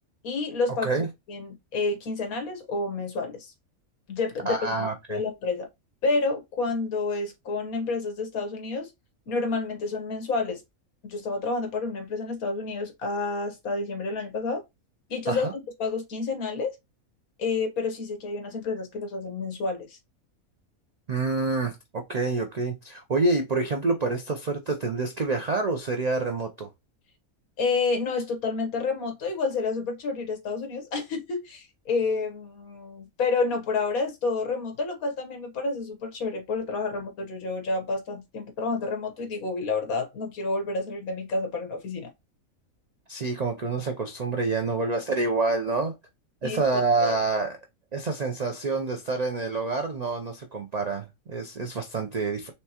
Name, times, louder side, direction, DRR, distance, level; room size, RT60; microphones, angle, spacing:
voice 1, 0.2-0.9 1.3-3.5 4.1-5.7 6.0-8.9 9.3-10.6 11.1-14.6 15.1-15.5 15.8-16.7 17.4-20.0 27.6-42.1 46.4-47.2, left 3 dB, 75° left, 1.6 m, -29 dB
voice 2, 4.5-5.2 15.3-15.5 21.1-26.7 43.1-46.0 46.4-47.6 47.9-52.5, right 3 dB, 80° right, 0.3 m, -27 dB
4.3 x 3.4 x 2.9 m
omnidirectional pair, 1.5 m